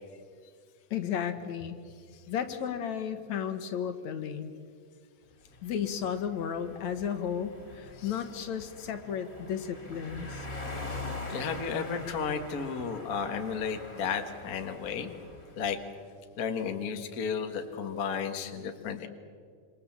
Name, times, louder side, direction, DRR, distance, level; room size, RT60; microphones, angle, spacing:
voice 1, 0.9-1.8 2.3-4.5 5.6-10.5, left 8 dB, 65° left, 9 dB, 2.6 m, -33 dB
sound 1, 5.5-15.8, left 2 dB, 20° left, 3.7 m, -43 dB
voice 2, 10.5-15.1 15.6-15.8 16.4-19.1, left 6 dB, 40° left, 5 dB, 1.6 m, -33 dB
27.0 x 25.5 x 7.4 m, 2.1 s
omnidirectional pair, 3.5 m